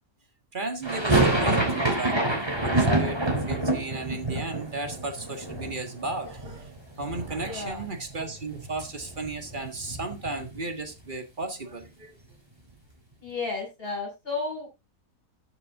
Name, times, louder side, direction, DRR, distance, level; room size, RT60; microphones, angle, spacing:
voice 1, 0.5-12.1, right 3 dB, 35° right, 1.7 m, -35 dB
sound 1, 0.8-6.8 7.0-7.9 8.1-8.2 8.5-10.7, right 2 dB, 15° right, 3.4 m, -27 dB
voice 2, 7.4-7.8 13.2-14.7, left 3 dB, 40° left, 6.0 m, -33 dB
13.5 x 7.0 x 3.6 m
omnidirectional pair, 1.5 m